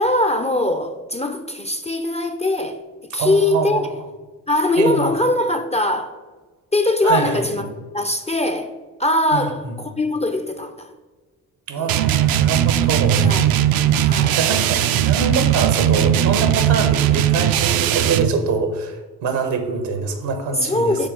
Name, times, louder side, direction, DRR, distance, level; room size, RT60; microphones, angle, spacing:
voice 1, 0.0-2.8 3.1-3.9 4.5-6.1 6.7-8.7 9.0-10.9 11.8-11.9 13.2-13.5 14.0-14.4 20.6-21.1, left 1 dB, 15° left, 0.4 m, -21 dB
voice 2, 3.2-3.9 4.8-5.1 7.0-7.7 9.3-9.8 11.7-13.3 13.6-13.8 14.3-21.0, right 5 dB, 70° right, 1.0 m, -24 dB
sound 1, 11.9-18.4, right 11 dB, 55° right, 0.5 m, -18 dB
5.7 x 3.4 x 5.1 m
hypercardioid pair, 45°, 45 cm